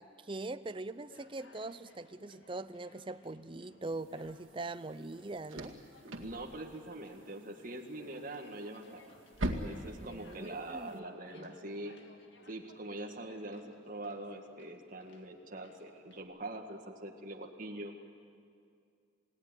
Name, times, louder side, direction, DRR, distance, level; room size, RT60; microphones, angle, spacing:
voice 1, 0.0-5.8 10.0-11.0 11.3-11.6, right 2 dB, 25° right, 13 dB, 0.5 m, -42 dB
Conversation, 1.0-16.2, left 2 dB, 65° left, 1.9 m, -61 dB
sound 1, 3.9-11.0, right 1 dB, 85° right, 2.2 m, -44 dB
voice 2, 6.0-9.0 9.5-12.0 12.5-18.0, right 1 dB, 40° right, 1 dB, 2.1 m, -43 dB
28.5 x 17.5 x 9.9 m, 2.4 s
head